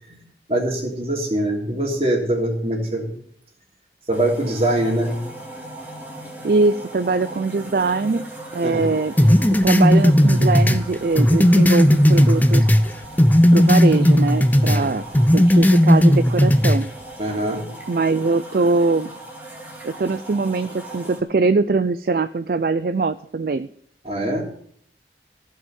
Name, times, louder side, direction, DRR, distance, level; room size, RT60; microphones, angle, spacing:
voice 1, 0.5-3.1 4.1-5.2 8.6-8.9 14.6-14.9 17.2-17.7 24.0-24.4, right 1 dB, 35° right, 0 dB, 3.0 m, -23 dB
sound 1, 4.1-21.2, right 1 dB, 10° right, 2.2 m, -38 dB
voice 2, 6.4-8.2 8.5-9.1 9.6-12.7 13.5-15.0 15.3-16.9 17.9-19.1 19.8-23.7, right 3 dB, 55° right, 12 dB, 0.4 m, -22 dB
sound 2, 9.2-12.9 13.2-14.8 15.1-16.8, equal, 10° left, 0.6 m, -15 dB
15.0 x 5.5 x 9.2 m, 0.64 s
head